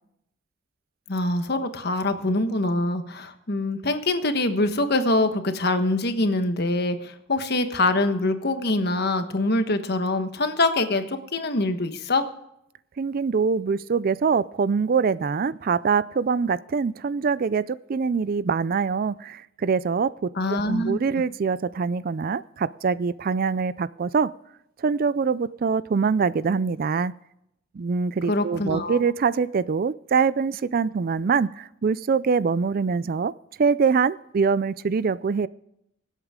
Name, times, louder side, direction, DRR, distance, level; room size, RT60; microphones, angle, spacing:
voice 1, 1.1-12.3 20.4-21.0 28.3-29.0, left 2 dB, 55° left, 8 dB, 1.3 m, -24 dB
voice 2, 13.0-24.3 24.8-27.1 27.7-33.3 33.6-35.5, right 5 dB, 45° right, 18 dB, 0.4 m, -24 dB
24.5 x 8.2 x 3.7 m, 0.80 s
head